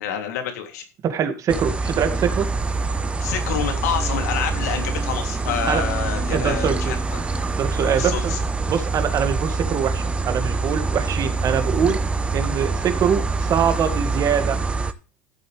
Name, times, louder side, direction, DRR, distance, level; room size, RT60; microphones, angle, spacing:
voice 1, 0.0-0.8 3.2-7.2 7.8-8.4, left 8 dB, 80° left, 5 dB, 3.0 m, -28 dB
voice 2, 1.0-2.5 5.7-5.8 6.3-6.9 7.6-8.3 8.7-12.0 12.3-14.6, right 8 dB, 40° right, 8 dB, 2.1 m, -23 dB
sound 1, 1.5-14.9, right 3 dB, 15° right, 1.0 m, -25 dB
13.5 x 8.1 x 3.4 m, 0.32 s
supercardioid pair, 105°, 8 cm